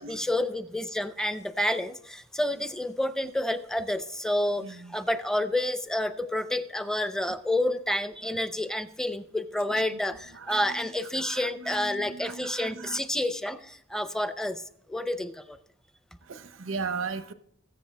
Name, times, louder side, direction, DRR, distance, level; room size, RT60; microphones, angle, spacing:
voice 1, 0.0-14.6 14.9-15.6, left 1 dB, 5° left, 11 dB, 0.5 m, -29 dB
voice 2, 4.6-5.0 8.2-8.4 9.7-10.0 10.3-13.0 16.2-17.3, right 5 dB, 90° right, 11 dB, 0.7 m, -38 dB
20.5 x 8.1 x 3.3 m, 0.69 s
head